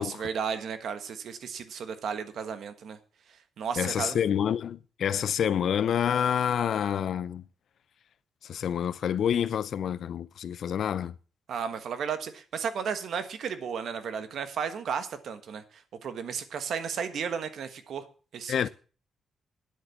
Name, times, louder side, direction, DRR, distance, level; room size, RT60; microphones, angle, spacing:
voice 1, 0.0-3.0 3.6-4.2 11.5-18.0 18.3-18.7, right 6 dB, 60° right, 1.4 m, -34 dB
voice 2, 3.8-7.4 8.5-11.1 18.5-18.7, left 9 dB, 60° left, 0.5 m, -28 dB
10.0 x 8.3 x 7.0 m
wide cardioid pair, 160°, 0 cm